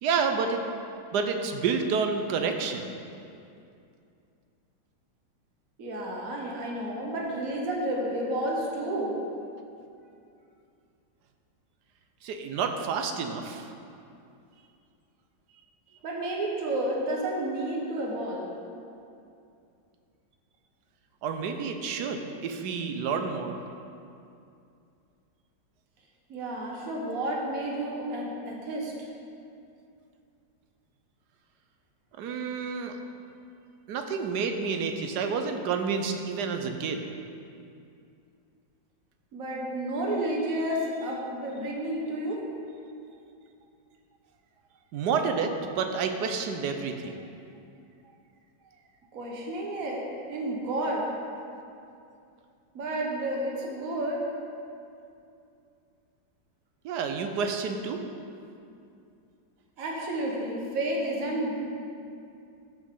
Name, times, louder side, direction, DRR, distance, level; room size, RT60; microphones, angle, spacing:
voice 1, 0.0-0.6 1.1-2.9 12.2-13.7 21.2-23.6 32.2-33.0 33.9-37.1 44.9-47.3 56.8-58.0, right 5 dB, 70° right, 5 dB, 1.2 m, -29 dB
voice 2, 5.8-9.2 16.0-18.5 26.3-28.9 39.3-42.4 49.1-51.1 52.7-54.2 59.8-61.5, right 1 dB, 50° right, -1 dB, 1.6 m, -31 dB
13.5 x 6.1 x 3.8 m, 2.5 s
omnidirectional pair, 2.0 m